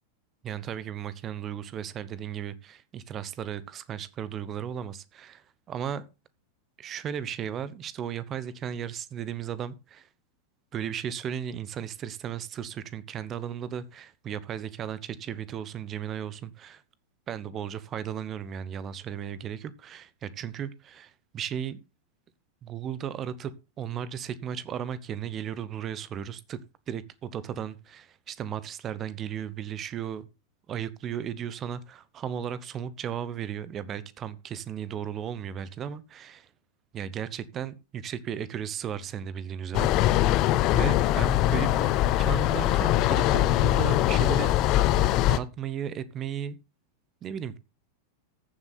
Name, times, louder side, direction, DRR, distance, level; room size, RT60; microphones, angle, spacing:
voice 1, 0.4-6.1 6.8-10.1 10.7-16.8 17.3-21.8 22.6-26.6 26.9-30.3 30.7-36.5 36.9-40.2 40.7-44.8 45.3-46.6 47.2-47.6, right 9 dB, 30° right, 1.0 m, -35 dB
sound 1, 39.7-45.4, left 13 dB, 40° left, 0.8 m, -22 dB
14.5 x 7.2 x 4.2 m
figure-of-eight pair, 90°, 0 cm